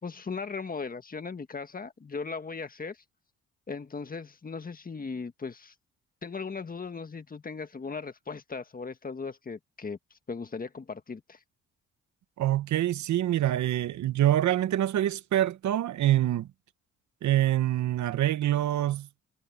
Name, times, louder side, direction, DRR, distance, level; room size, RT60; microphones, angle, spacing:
voice 1, 0.0-3.0 3.7-5.7 6.2-10.0 10.3-11.4, left 4 dB, 30° left, 1.6 m, -38 dB
voice 2, 12.4-16.5 17.2-19.1, right 13 dB, 70° right, 1.1 m, -25 dB
cardioid pair, 90°, 30 cm